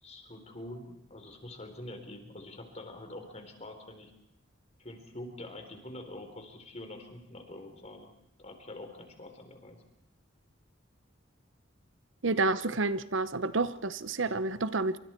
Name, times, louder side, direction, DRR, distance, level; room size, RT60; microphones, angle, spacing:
voice 1, 0.0-4.1 4.8-8.1 8.4-9.8, left 1 dB, 35° left, 6 dB, 3.9 m, -45 dB
voice 2, 12.2-15.0, right 3 dB, 75° right, 14 dB, 0.9 m, -29 dB
28.5 x 25.5 x 4.5 m, 0.76 s
head